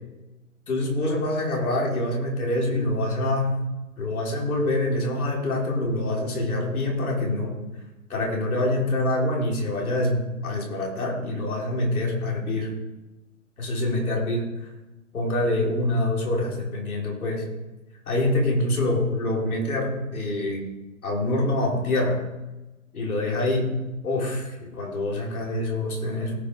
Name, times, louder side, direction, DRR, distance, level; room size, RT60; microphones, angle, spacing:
voice 1, 0.7-3.6 4.0-7.6 8.1-12.7 13.6-14.7 15.1-17.5 18.1-20.7 21.0-22.2 22.9-26.3, left 1 dB, 80° left, -2 dB, 4.7 m, -25 dB
18.0 x 6.1 x 5.0 m, 1.0 s
hypercardioid pair, 140°, 42 cm